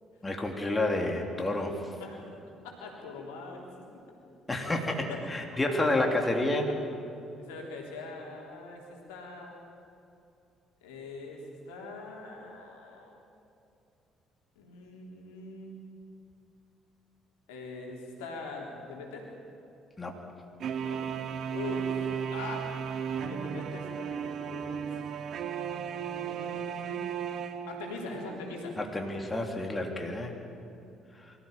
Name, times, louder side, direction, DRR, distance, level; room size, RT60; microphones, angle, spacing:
voice 1, 0.2-1.9 4.5-6.6 20.0-20.1 28.8-30.4 31.2-31.3, left 2 dB, 20° left, 2 dB, 3.3 m, -30 dB
voice 2, 2.6-3.9 5.1-5.2 7.4-9.6 10.8-13.1 14.6-15.8 17.5-19.3 20.8-21.0 21.5-22.7 23.2-24.9 26.0-27.1 27.7-28.8, left 3 dB, 75° left, -1 dB, 3.6 m, -42 dB
sound 1, 20.6-28.4, right 7 dB, 55° right, 1.2 m, -35 dB
24.5 x 14.5 x 9.0 m, 2.7 s
hypercardioid pair, 50°, 0 cm